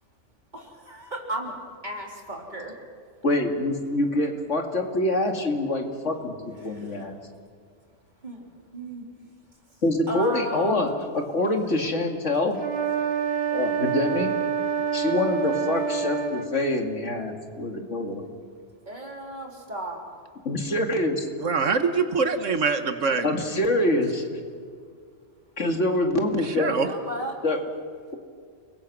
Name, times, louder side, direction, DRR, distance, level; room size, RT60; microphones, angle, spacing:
voice 1, 0.5-1.6 1.8-2.7 8.2-8.4 8.7-9.0 10.1-11.0 18.9-20.0 26.6-27.3, right 1 dB, 35° right, 0 dB, 3.9 m, -34 dB
voice 2, 3.2-6.3 6.6-7.2 9.8-12.6 13.5-14.3 14.9-18.2 20.5-21.2 23.2-24.1 25.6-26.7 27.4-27.6, left 1 dB, 70° left, 3 dB, 2.6 m, -25 dB
sound 1, 12.5-16.5, right 7 dB, 55° right, 2.4 m, -27 dB
voice 3, 21.4-23.3 26.5-26.9, right 5 dB, 75° right, 8 dB, 1.6 m, -24 dB
30.0 x 21.5 x 6.2 m, 2.1 s
omnidirectional pair, 1.3 m